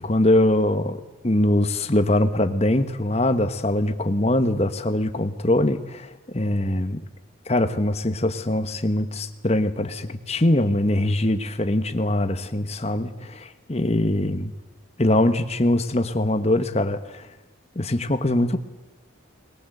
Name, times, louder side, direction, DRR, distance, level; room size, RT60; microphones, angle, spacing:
voice 1, 0.0-7.0 7.5-14.5 15.0-17.3 17.7-18.6, left 1 dB, 30° left, 9 dB, 1.2 m, -22 dB
21.0 x 21.0 x 8.0 m, 1.2 s
head